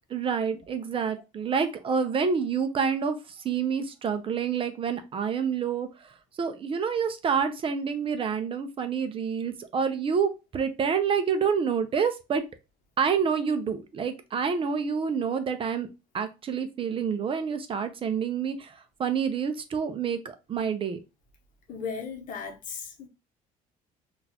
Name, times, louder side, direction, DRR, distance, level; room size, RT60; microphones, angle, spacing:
voice 1, 0.1-12.4 13.0-15.9 16.1-21.0, right 6 dB, 35° right, 0.5 m, -28 dB
voice 2, 21.7-23.1, left 6 dB, 55° left, 0.8 m, -36 dB
3.9 x 2.4 x 2.7 m
cardioid pair, 115°, 16 cm